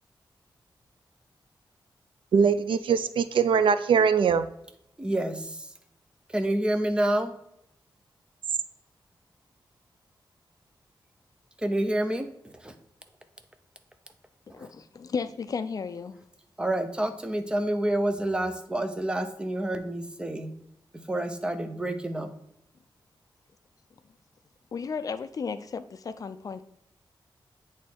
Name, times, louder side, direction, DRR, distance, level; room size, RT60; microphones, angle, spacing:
voice 1, 2.3-4.5, right 6 dB, 90° right, 12 dB, 0.4 m, -22 dB
voice 2, 5.0-5.7 6.3-7.3 11.6-12.8 14.6-14.7 16.6-20.5 21.1-22.3, right 1 dB, 10° right, 7 dB, 0.5 m, -28 dB
voice 3, 14.5-16.2 24.7-26.6, left 5 dB, 45° left, 11 dB, 0.4 m, -34 dB
8.2 x 3.1 x 4.3 m, 0.77 s
wide cardioid pair, 175°, 8 cm